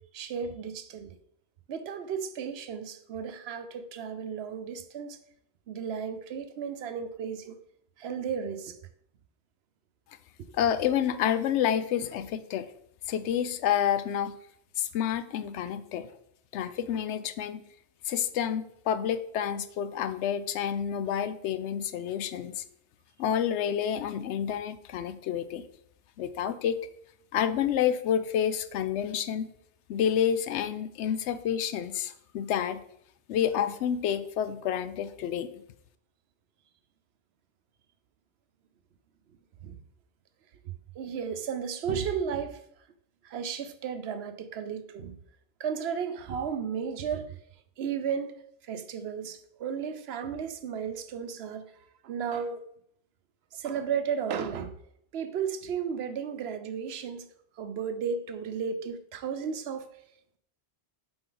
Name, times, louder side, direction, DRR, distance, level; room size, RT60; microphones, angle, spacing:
voice 1, 0.1-1.2 1.7-5.2 5.7-7.6 8.0-8.8 10.5-10.6 39.6-39.8 40.6-42.6 43.2-45.2 45.6-47.4 47.8-48.3 48.6-51.6 52.0-52.6 53.5-54.7 55.1-57.3 57.6-59.9, right 7 dB, 70° right, 0.9 m, -34 dB
voice 2, 10.5-12.7 13.1-14.4 14.8-16.1 16.5-17.6 18.0-22.6 23.2-25.7 26.2-26.8 27.3-29.5 29.9-32.8 33.3-35.5, left 9 dB, 90° left, 0.9 m, -29 dB
7.8 x 4.4 x 3.9 m
omnidirectional pair, 1.1 m